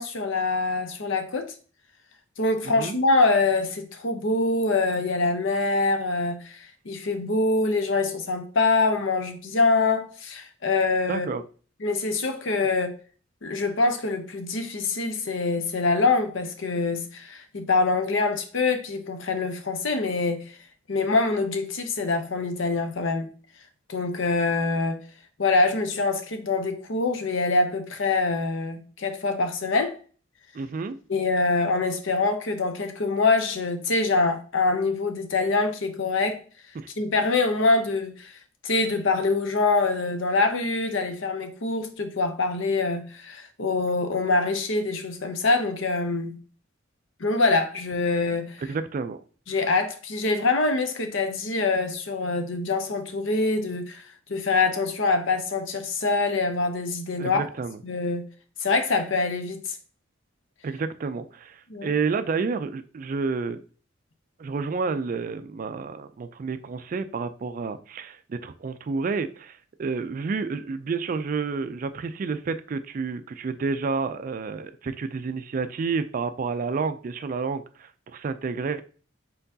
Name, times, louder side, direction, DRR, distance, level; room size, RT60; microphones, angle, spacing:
voice 1, 0.0-1.5 2.4-11.3 11.8-13.0 13.4-20.4 20.9-23.3 23.9-25.0 25.4-30.0 31.1-36.4 37.0-38.3 38.6-46.4 47.2-48.6 49.5-54.0 54.3-57.4 57.8-58.2 58.6-59.8 61.7-61.9, left 3 dB, 70° left, 0.7 m, -24 dB
voice 2, 2.6-3.0 11.1-11.4 30.5-31.0 36.8-36.9 48.6-49.2 57.2-57.8 60.6-63.6 64.4-78.8, right 4 dB, 40° right, 0.3 m, -30 dB
4.4 x 3.8 x 2.7 m
head